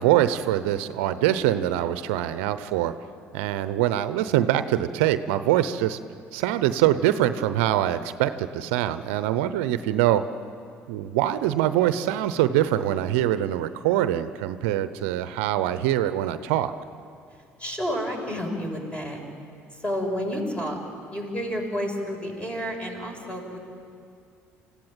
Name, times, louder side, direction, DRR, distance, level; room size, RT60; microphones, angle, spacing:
voice 1, 0.0-2.9 3.3-6.0 6.3-10.2 10.9-16.7, right 12 dB, 75° right, 12 dB, 0.8 m, -24 dB
voice 2, 17.3-19.2 19.7-20.8 21.1-23.6, equal, 15° left, 1 dB, 6.7 m, -30 dB
27.5 x 15.5 x 9.1 m, 2.3 s
hypercardioid pair, 60°, 7 cm